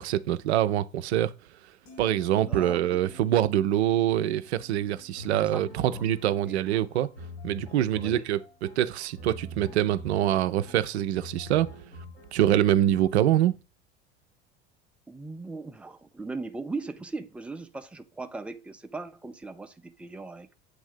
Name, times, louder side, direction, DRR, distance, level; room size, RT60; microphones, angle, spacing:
voice 1, 0.0-1.3 2.0-7.1 7.4-11.7 12.3-13.5, right 12 dB, 70° right, 0.5 m, -25 dB
sound 1, 1.8-8.1 8.5-8.8, left 3 dB, 55° left, 2.0 m, -55 dB
voice 2, 2.5-3.0 5.3-6.0 6.4-6.6 8.0-8.3 15.1-20.5, right 3 dB, 5° right, 0.4 m, -39 dB
sound 2, 5.2-13.1, left 1 dB, 85° left, 3.8 m, -45 dB
7.9 x 2.7 x 5.0 m
figure-of-eight pair, 70°, 34 cm